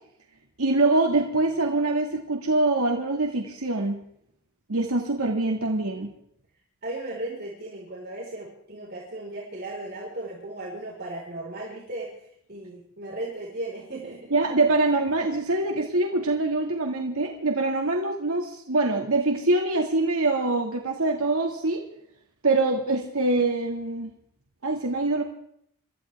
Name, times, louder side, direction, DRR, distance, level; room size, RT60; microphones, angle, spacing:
voice 1, 0.6-4.0 4.7-6.1 14.3-21.8 22.4-24.1 24.6-25.2, right 2 dB, 75° right, 1 dB, 2.0 m, -24 dB
voice 2, 6.8-14.3, right 2 dB, 45° right, -4 dB, 4.7 m, -36 dB
27.5 x 14.5 x 3.5 m, 0.70 s
head